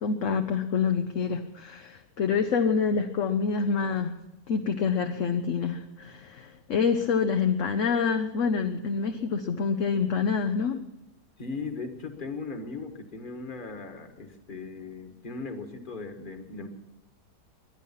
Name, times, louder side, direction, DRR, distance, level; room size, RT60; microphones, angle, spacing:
voice 1, 0.0-4.1 4.5-10.8, left 5 dB, 55° left, 6 dB, 1.0 m, -27 dB
voice 2, 11.4-16.7, left 4 dB, 30° left, 6 dB, 1.6 m, -38 dB
23.0 x 10.0 x 5.7 m, 0.93 s
omnidirectional pair, 1.8 m